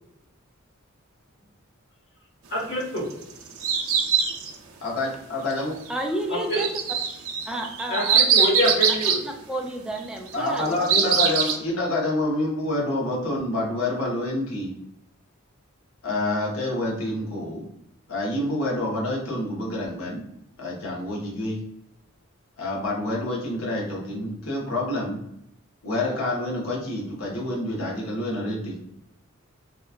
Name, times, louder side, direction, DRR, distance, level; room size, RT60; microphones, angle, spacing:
voice 1, 2.5-3.0 6.3-6.6 7.9-9.2, equal, 55° left, -4 dB, 1.0 m, -25 dB
sound 1, 3.0-4.6 6.5-9.2 10.3-11.6, right 7 dB, 80° right, 0.5 m, -22 dB
voice 2, 4.8-5.8 10.3-14.7 16.0-17.6 18.1-20.2 20.6-21.6 22.6-25.2 25.8-28.8, left 1 dB, 75° left, -3 dB, 0.8 m, -27 dB
voice 3, 5.9-6.7 7.5-8.4 9.2-11.1, right 1 dB, 5° right, 1 dB, 0.3 m, -31 dB
2.8 x 2.2 x 2.3 m, 0.78 s
head